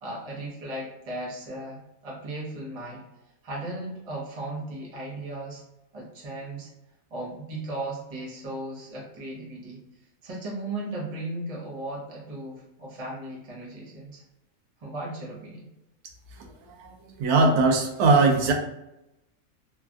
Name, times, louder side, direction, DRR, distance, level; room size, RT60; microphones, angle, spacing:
voice 1, 0.0-3.1 3.4-5.6 5.9-6.7 7.1-9.8 10.2-14.2 14.8-15.7, right 1 dB, 30° right, -4 dB, 0.8 m, -36 dB
voice 2, 16.4-18.5, right 3 dB, 90° right, 3 dB, 1.1 m, -21 dB
3.2 x 2.3 x 2.4 m, 0.90 s
omnidirectional pair, 1.6 m